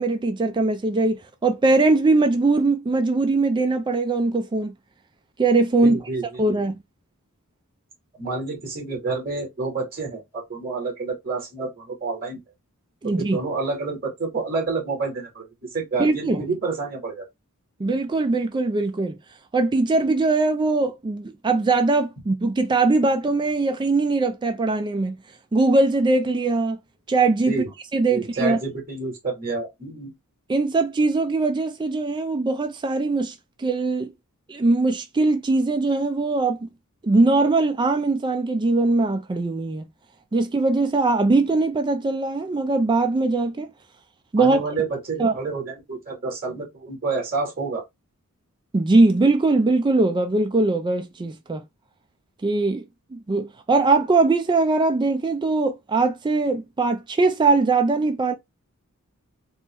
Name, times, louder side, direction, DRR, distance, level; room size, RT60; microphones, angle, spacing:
voice 1, 0.0-4.7 5.4-6.0 6.4-6.8 13.0-13.4 16.0-16.4 17.8-19.2 19.5-25.2 25.5-26.8 27.1-27.6 27.9-28.6 30.5-34.1 34.5-36.7 37.0-39.8 40.3-43.7 44.3-44.6 45.2-45.3 48.7-51.6 52.4-52.8 53.1-58.3, right 3 dB, 20° right, 0.3 m, -21 dB
voice 2, 5.8-6.5 8.1-12.4 13.2-17.2 27.5-27.7 28.1-30.1 44.4-47.8, right 3 dB, 40° right, 2.3 m, -29 dB
4.3 x 2.1 x 3.4 m
head